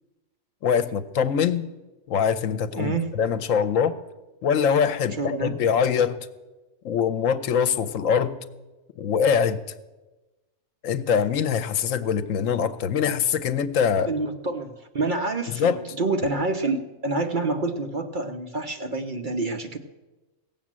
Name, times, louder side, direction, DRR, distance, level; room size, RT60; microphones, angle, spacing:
voice 1, 0.6-1.7 2.1-4.0 4.4-6.2 6.8-8.4 9.0-9.6 10.8-14.1 15.5-15.8, left 7 dB, 75° left, 13 dB, 1.1 m, -23 dB
voice 2, 2.8-3.1 5.2-5.5 14.1-19.8, right 3 dB, 45° right, 6 dB, 0.8 m, -27 dB
17.0 x 7.4 x 7.4 m, 1.1 s
omnidirectional pair, 1.4 m